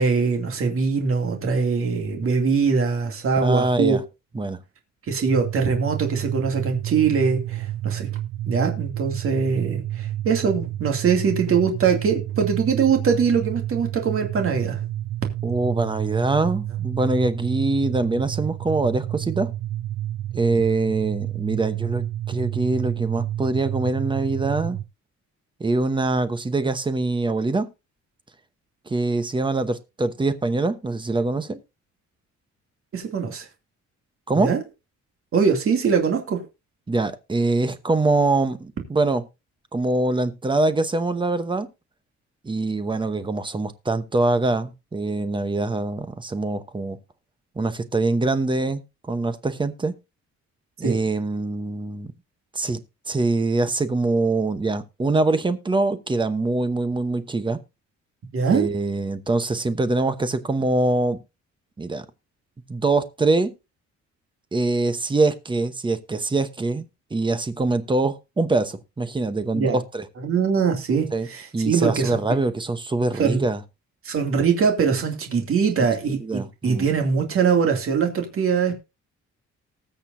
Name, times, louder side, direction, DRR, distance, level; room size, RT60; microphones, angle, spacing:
voice 1, 0.0-4.0 5.1-8.1 8.4-14.8 32.9-33.5 34.3-34.6 35.3-36.4 50.8-51.0 58.3-58.7 69.5-69.8 70.2-72.2 73.1-73.4 74.0-78.7, right 5 dB, 50° right, 2.5 m, -22 dB
voice 2, 3.4-4.0 4.3-4.6 15.4-19.5 20.3-24.8 25.6-27.7 28.9-31.6 34.3-34.5 36.9-39.2 39.7-41.7 42.4-47.0 47.6-48.8 49.1-49.9 50.8-52.1 52.5-52.8 53.1-57.6 58.5-61.2 61.8-62.0 62.7-63.5 64.5-66.9 67.1-70.0 71.1-71.3 71.5-73.6 76.2-76.9, right 2 dB, 15° right, 0.9 m, -23 dB
sound 1, 5.3-24.8, right 13 dB, 80° right, 0.8 m, -30 dB
19.5 x 6.7 x 2.7 m
cardioid pair, 160°, 29 cm